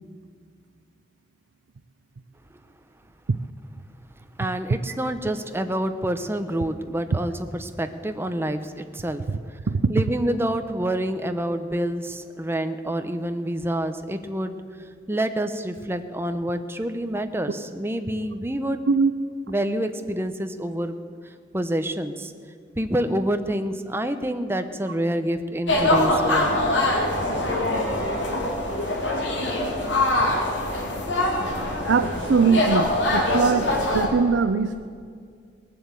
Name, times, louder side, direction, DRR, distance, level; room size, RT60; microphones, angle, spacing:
voice 1, 4.4-9.6 9.9-14.5 15.1-18.8 19.5-20.9 21.5-22.3 22.8-26.6, right 1 dB, 15° right, 8 dB, 0.8 m, -27 dB
sound 1, 25.7-34.1, left 1 dB, 90° left, 2.9 m, -23 dB
voice 2, 31.8-34.7, right 5 dB, 90° right, 8 dB, 0.6 m, -21 dB
19.5 x 7.8 x 8.3 m, 2.1 s
head